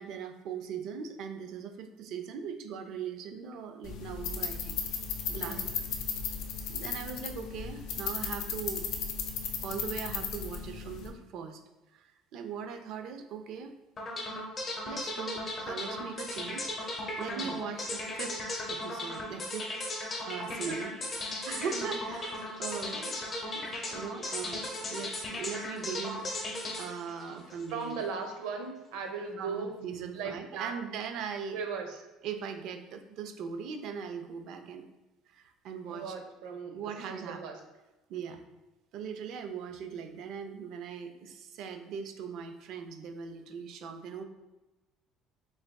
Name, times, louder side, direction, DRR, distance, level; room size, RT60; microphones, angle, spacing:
voice 1, 0.0-5.6 6.7-8.9 9.6-11.6 11.9-13.7 14.9-16.8 17.2-18.4 18.7-19.7 20.3-20.9 21.4-22.3 22.6-23.2 23.5-28.0 29.4-31.6 32.2-34.8 35.3-36.1 36.7-37.4 38.1-38.4 38.9-44.2, right 6 dB, 55° right, 7 dB, 0.4 m, -40 dB
sound 1, 3.8-11.1, left 6 dB, 60° left, 0.5 m, -36 dB
sound 2, 14.0-28.1, left 1 dB, 25° left, 0.7 m, -37 dB
voice 2, 17.3-17.6 20.6-20.8 21.7-22.0 27.7-29.7 30.1-30.8 31.5-32.1 35.9-37.6 38.1-38.4, right 5 dB, 85° right, 4 dB, 0.8 m, -38 dB
4.7 x 3.6 x 2.3 m, 1.1 s
cardioid pair, 165°, 0 cm